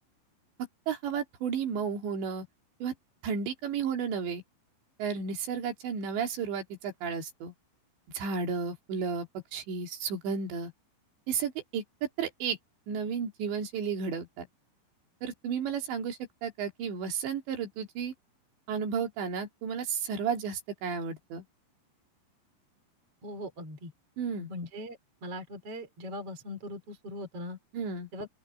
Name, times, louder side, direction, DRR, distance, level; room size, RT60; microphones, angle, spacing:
voice 1, 0.9-2.5 2.8-2.9 3.2-4.4 5.0-7.5 8.1-9.3 9.5-10.7 11.3-11.8 12.2-12.6 12.9-14.5 15.2-18.1 18.7-21.4 24.2-24.5 27.7-28.1, right 6 dB, 65° right, 5.0 m, -33 dB
voice 2, 23.2-23.9 24.5-27.6 28.1-28.3, left 1 dB, 30° right, 5.1 m, -40 dB
open air
omnidirectional pair, 5.5 m